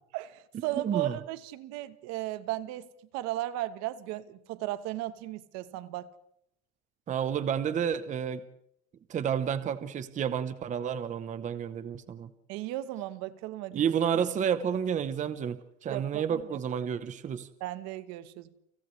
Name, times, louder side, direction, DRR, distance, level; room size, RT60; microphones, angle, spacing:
voice 1, 0.1-2.9 3.1-6.1 12.5-13.8 15.9-16.6 17.6-18.5, right 15 dB, 55° right, 1.3 m, -35 dB
voice 2, 0.8-1.2 7.1-8.4 9.1-12.3 13.7-17.5, right 8 dB, 25° right, 1.0 m, -30 dB
30.0 x 27.0 x 3.3 m
supercardioid pair, 145°, 32 cm